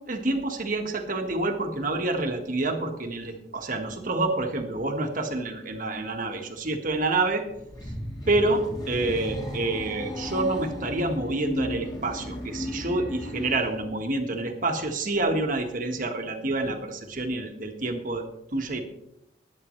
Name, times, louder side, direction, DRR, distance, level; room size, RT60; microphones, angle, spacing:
voice 1, 0.1-7.4 8.3-8.6 8.9-18.2 18.5-18.8, right 2 dB, 45° right, 4 dB, 1.6 m, -28 dB
sound 1, 7.5-13.7, left 1 dB, 25° left, 2.5 m, -35 dB
20.5 x 8.9 x 3.2 m, 0.83 s
head